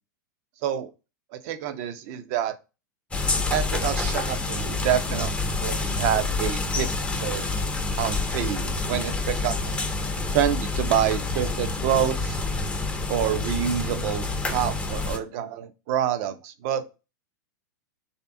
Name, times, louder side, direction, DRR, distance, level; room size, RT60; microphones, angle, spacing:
voice 1, 1.3-2.5 3.5-6.9 7.2-7.5 8.0-9.6 10.3-12.4 13.1-16.8, right 10 dB, 50° right, 0.7 m, -27 dB
sound 1, 3.1-15.2, left 3 dB, 10° left, 0.7 m, -28 dB
3.3 x 2.8 x 4.5 m
hypercardioid pair, 100°, 11 cm